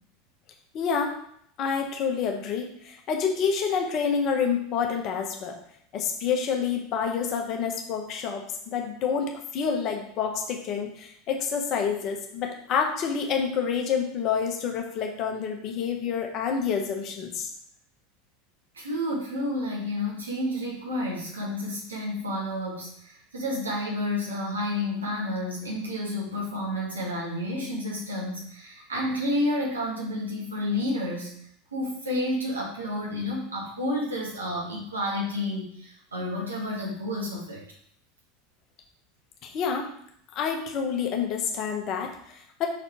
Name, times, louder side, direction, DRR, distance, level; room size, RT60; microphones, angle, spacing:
voice 1, 0.7-1.1 1.6-5.6 5.9-17.5 39.4-39.9 40.3-42.7, left 6 dB, 40° left, 2 dB, 1.3 m, -28 dB
voice 2, 18.7-31.3 31.7-37.6, left 1 dB, 75° right, -3 dB, 2.0 m, -30 dB
6.1 x 4.1 x 4.6 m, 0.68 s
figure-of-eight pair, 80°, 0 cm